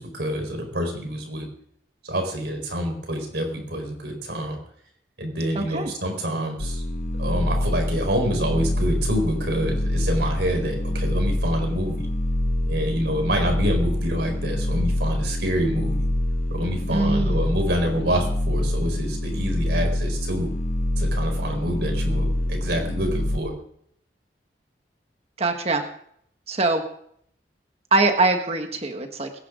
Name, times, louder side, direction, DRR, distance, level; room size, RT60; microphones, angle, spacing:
voice 1, 0.0-1.5 2.0-4.6 5.2-6.8 7.2-12.1 12.6-16.1 16.5-20.5 21.0-23.5, equal, 75° right, 3 dB, 4.5 m, -27 dB
voice 2, 5.5-5.9 16.9-17.5 25.4-25.8 26.5-26.8 27.9-29.4, right 3 dB, 35° right, 5 dB, 1.4 m, -23 dB
sound 1, 6.6-23.4, left 1 dB, 45° left, 0.9 m, -25 dB
22.0 x 10.5 x 3.8 m, 0.66 s
head